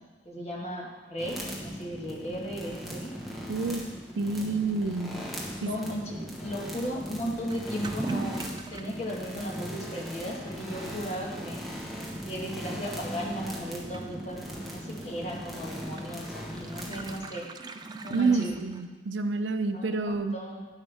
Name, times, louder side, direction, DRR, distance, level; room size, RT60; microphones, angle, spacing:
voice 1, 0.2-3.1 5.6-8.4 8.7-11.6 12.2-17.5 18.0-18.6 19.7-20.7, equal, 35° left, -2 dB, 1.6 m, -36 dB
sound 1, 1.2-17.2, equal, ahead, 1.2 m, -39 dB
voice 2, 3.5-3.8 4.2-5.1 5.6-5.7 18.1-20.4, right 3 dB, 80° right, 9 dB, 0.6 m, -28 dB
Toilet flush / Liquid, 7.5-19.1, right 3 dB, 25° right, 0.4 m, -43 dB
9.7 x 8.1 x 3.5 m, 1.3 s
head